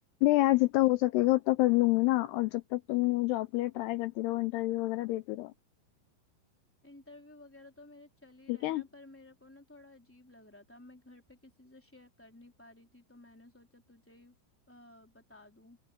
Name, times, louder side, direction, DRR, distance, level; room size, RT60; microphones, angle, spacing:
voice 1, 0.2-5.5 8.5-8.8, left 19 dB, 85° left, 2.4 m, -27 dB
voice 2, 6.8-14.3 14.7-15.8, left 2 dB, 5° left, 2.5 m, -55 dB
open air
omnidirectional pair, 5.2 m